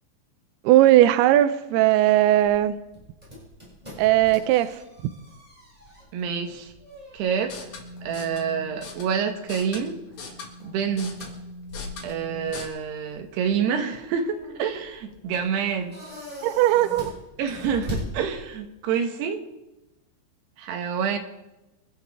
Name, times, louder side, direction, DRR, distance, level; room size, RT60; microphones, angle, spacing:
voice 1, 0.6-2.8 4.0-4.7 16.4-17.1, right 14 dB, 85° right, 12 dB, 2.3 m, -18 dB
sound 1, 2.4-18.8, left 1 dB, 10° right, 6.5 m, -42 dB
voice 2, 6.1-6.7 7.1-7.6 8.0-10.0 10.6-11.1 12.0-16.0 17.4-19.4 20.6-21.2, right 7 dB, 70° right, 5 dB, 3.2 m, -27 dB
sound 2, 7.4-12.7, left 2 dB, 50° left, 2.7 m, -39 dB
26.5 x 12.0 x 3.5 m, 0.97 s
omnidirectional pair, 5.3 m